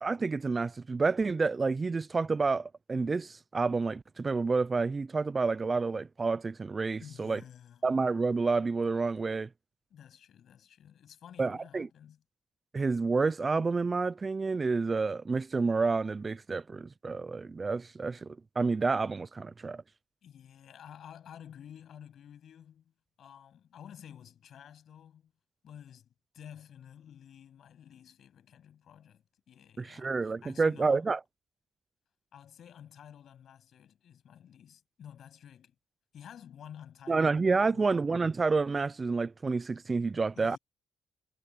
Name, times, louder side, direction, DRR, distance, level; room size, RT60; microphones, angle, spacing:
voice 1, 0.0-7.4 7.8-9.5 11.4-11.9 12.7-19.8 29.8-31.2 37.1-40.6, right 4 dB, 30° right, 0.3 m, -29 dB
voice 2, 7.0-7.8 9.9-12.2 20.2-25.3 25.6-31.1 32.3-35.7 36.1-37.4 37.7-37.9 40.3-40.6, left 9 dB, 65° left, 7.8 m, -51 dB
cardioid pair, 90°, 0 cm